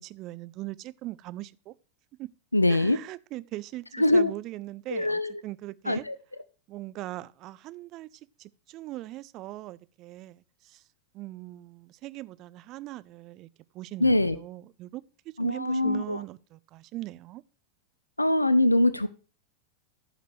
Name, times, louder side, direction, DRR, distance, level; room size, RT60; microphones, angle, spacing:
voice 1, 0.0-1.7 2.2-2.3 2.7-6.0 6.7-10.8 11.1-13.5 13.7-17.4, right 17 dB, 35° right, 0.4 m, -40 dB
voice 2, 2.5-3.0 4.0-4.3 4.9-5.4 5.9-6.2 14.0-14.4 15.4-16.2 18.2-19.1, left 1 dB, 85° left, 0.3 m, -23 dB
15.0 x 5.1 x 3.2 m
figure-of-eight pair, 90°, 0 cm